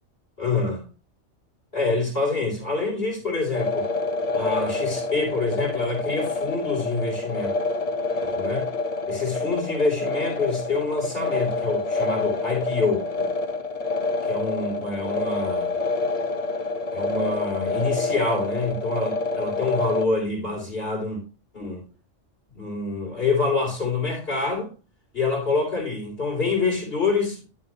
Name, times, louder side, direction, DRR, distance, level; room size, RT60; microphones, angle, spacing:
voice 1, 0.4-0.8 1.7-3.9 4.3-7.5 8.2-8.7 9.1-13.3 14.3-15.7 16.9-21.2 21.5-21.8 22.5-24.7 25.1-27.4, left 3 dB, 55° left, 3.4 m, -26 dB
sound 1, 3.5-20.1, left 3 dB, 35° left, 0.9 m, -27 dB
11.0 x 7.4 x 2.9 m
omnidirectional pair, 1.2 m